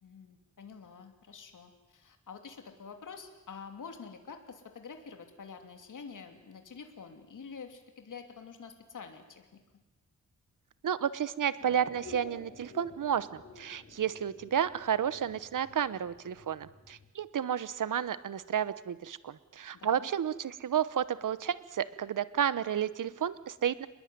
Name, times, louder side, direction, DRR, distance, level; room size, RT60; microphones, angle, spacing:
voice 1, 0.0-9.6 19.7-20.1, left 5 dB, 80° left, 5 dB, 2.9 m, -47 dB
voice 2, 10.8-23.9, right 9 dB, 80° right, 16 dB, 1.0 m, -31 dB
sound 1, 11.6-17.1, left 3 dB, 55° left, 3.4 m, -52 dB
25.0 x 21.0 x 9.5 m, 1.1 s
wide cardioid pair, 180°, 31 cm